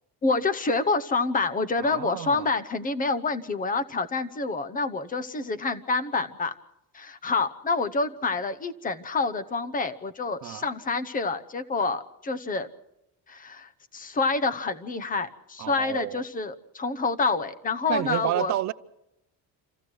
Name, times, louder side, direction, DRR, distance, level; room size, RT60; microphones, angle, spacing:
voice 1, 0.2-6.5 6.9-12.7 13.3-18.5, left 3 dB, 20° left, 0.9 m, -27 dB
voice 2, 1.8-2.5 10.4-10.6 15.6-16.2 17.9-18.7, right 14 dB, 45° right, 0.7 m, -30 dB
27.0 x 15.5 x 6.2 m
cardioid pair, 165°, 39 cm